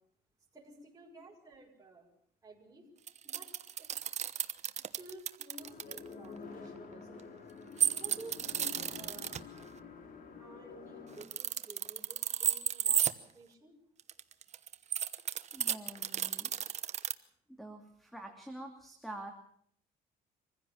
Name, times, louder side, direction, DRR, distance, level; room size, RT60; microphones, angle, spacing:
voice 1, 0.5-2.1 2.4-2.9 3.2-3.5 3.8-3.9 4.9-7.4 8.0-9.3 10.4-13.1 13.3-13.8, right 2 dB, 20° right, -3 dB, 6.5 m, -53 dB
sound 1, 3.1-6.0 7.8-9.4 11.1-13.1 14.0-17.1, right 8 dB, 40° right, 1.1 m, -32 dB
sound 2, 5.6-11.2, left 5 dB, 55° left, 4.0 m, -49 dB
voice 2, 15.5-16.5 17.6-19.3, right 1 dB, ahead, 5 dB, 2.7 m, -46 dB
25.0 x 15.5 x 7.3 m, 0.65 s
cardioid pair, 110°, 17 cm